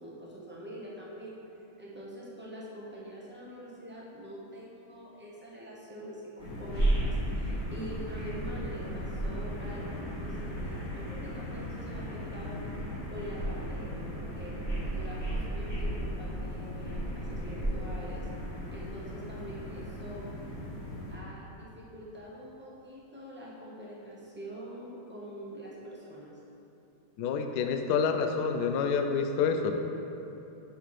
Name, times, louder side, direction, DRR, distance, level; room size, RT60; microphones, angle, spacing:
voice 1, 0.0-1.4 1.8-12.6 13.1-14.6 14.8-18.3 18.7-20.3 21.1-26.3, equal, 15° right, -6 dB, 0.4 m, -44 dB
sound 1, 6.4-21.1, right 1 dB, 40° left, 2.0 m, -35 dB
voice 2, 27.2-29.7, left 6 dB, 75° left, 6 dB, 0.9 m, -28 dB
6.7 x 5.7 x 4.8 m, 2.9 s
omnidirectional pair, 2.2 m